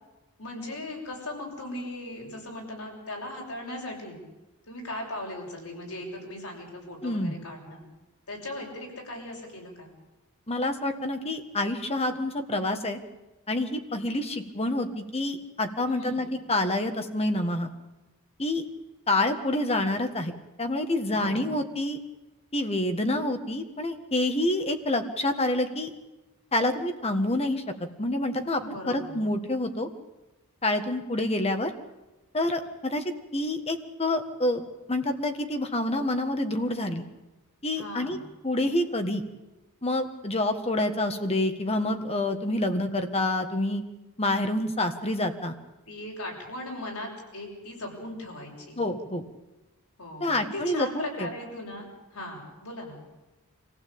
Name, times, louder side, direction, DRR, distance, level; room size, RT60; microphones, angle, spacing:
voice 1, 0.4-4.2 4.7-7.8 8.3-9.9 15.8-16.2 21.1-21.5 28.6-29.2 37.7-38.2 45.9-48.8 50.0-53.0, left 1 dB, 80° left, 0 dB, 6.9 m, -38 dB
voice 2, 7.0-7.4 10.5-13.0 13.5-17.7 18.4-18.6 19.1-22.0 22.5-25.9 26.5-27.6 28.0-29.9 30.6-31.7 32.3-33.0 33.3-34.6 34.9-37.0 37.6-38.2 38.4-39.2 39.8-43.8 44.2-45.5 48.8-49.2 50.2-51.3, left 1 dB, 25° left, 7 dB, 1.7 m, -27 dB
24.5 x 15.5 x 8.8 m, 1.1 s
head